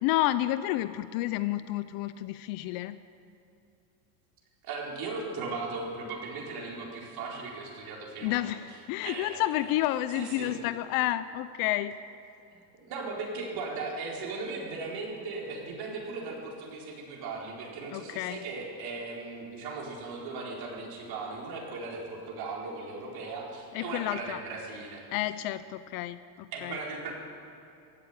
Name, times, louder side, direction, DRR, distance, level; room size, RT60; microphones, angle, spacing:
voice 1, 0.0-3.0 8.2-12.0 17.9-18.4 23.7-24.4 25.1-26.8, left 15 dB, 45° left, 14 dB, 0.5 m, -30 dB
voice 2, 4.6-8.5 9.0-9.5 10.1-10.5 12.5-25.0 26.5-27.1, right 3 dB, 45° right, -2 dB, 4.5 m, -37 dB
15.5 x 8.2 x 9.6 m, 2.8 s
supercardioid pair, 125°, 49 cm